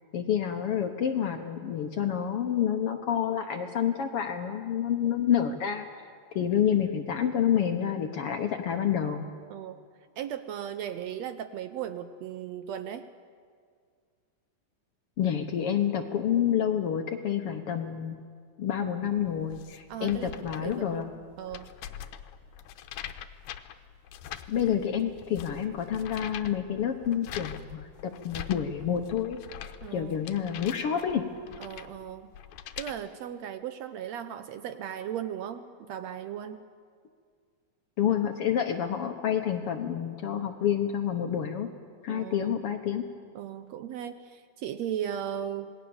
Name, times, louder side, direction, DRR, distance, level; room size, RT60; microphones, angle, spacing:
voice 1, 0.1-5.8 6.3-9.3 15.2-18.2 18.6-21.1 24.5-31.3 38.0-41.7 42.0-43.0, left 9 dB, 65° left, 5 dB, 1.6 m, -28 dB
voice 2, 9.5-9.8 10.2-13.1 19.9-21.8 29.8-30.2 31.6-32.3 32.8-36.6 42.1-42.6 43.4-45.7, right 9 dB, 75° right, 10 dB, 1.7 m, -37 dB
sound 1, 19.2-32.9, left 10 dB, 80° left, 2.3 m, -44 dB
27.5 x 19.5 x 7.0 m, 2.1 s
omnidirectional pair, 3.5 m